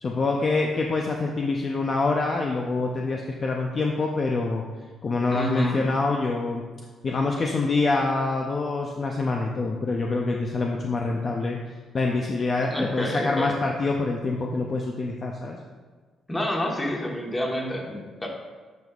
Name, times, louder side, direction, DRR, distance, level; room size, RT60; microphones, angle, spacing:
voice 1, 0.0-4.6 5.0-6.6 7.0-11.6 11.9-15.6, left 3 dB, 40° left, 0 dB, 0.6 m, -25 dB
voice 2, 5.3-5.9 12.7-13.6 16.3-18.3, left 1 dB, 15° left, 0 dB, 1.3 m, -28 dB
9.3 x 5.3 x 2.4 m, 1.4 s
cardioid pair, 90°, 0 cm